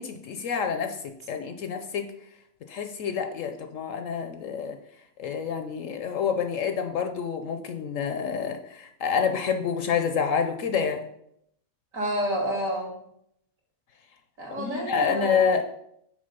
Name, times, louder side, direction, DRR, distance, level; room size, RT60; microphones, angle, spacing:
voice 1, 0.0-2.1 2.7-4.8 5.2-11.0 14.6-15.6, left 6 dB, 65° left, 6 dB, 0.9 m, -28 dB
voice 2, 11.9-13.0 14.4-15.5, equal, 60° right, -1 dB, 2.1 m, -29 dB
6.3 x 4.1 x 5.3 m, 0.75 s
omnidirectional pair, 1.6 m